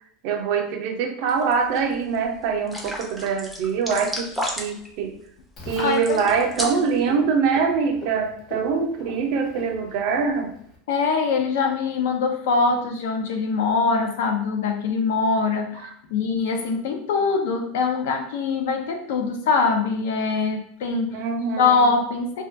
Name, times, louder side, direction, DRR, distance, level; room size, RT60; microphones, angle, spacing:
voice 1, 0.2-5.1 5.7-10.5 21.1-22.0, right 5 dB, 60° right, 4 dB, 0.4 m, -24 dB
sound 1, 1.3-1.8 2.1-2.2 2.7-4.9 5.7-7.0, equal, ahead, 0.4 m, -32 dB
Frog, 5.6-10.8, left 2 dB, 40° left, 0.9 m, -41 dB
voice 2, 5.8-6.2 10.9-21.2 21.6-22.4, left 4 dB, 85° left, 4 dB, 0.4 m, -23 dB
2.2 x 2.2 x 2.5 m, 0.66 s
supercardioid pair, 135°, 0 cm